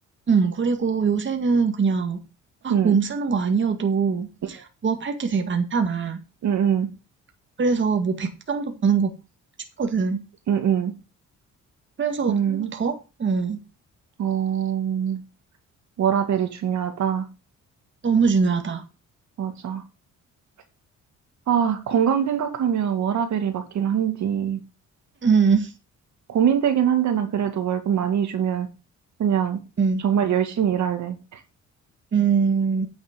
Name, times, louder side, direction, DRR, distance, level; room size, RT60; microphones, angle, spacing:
voice 1, 0.3-2.2 2.6-6.2 7.6-9.1 9.8-10.2 12.0-13.6 18.0-18.8 25.2-25.7 29.8-30.0 32.1-32.9, right 5 dB, 40° right, 5 dB, 1.9 m, -22 dB
voice 2, 6.4-6.9 10.5-10.9 12.3-12.7 14.2-15.2 16.0-17.3 19.4-19.8 21.5-24.6 26.3-28.7 29.2-29.6 30.0-31.4, right 8 dB, 70° right, 7 dB, 2.1 m, -23 dB
8.9 x 7.2 x 5.2 m, 0.30 s
cardioid pair, 90°, 30 cm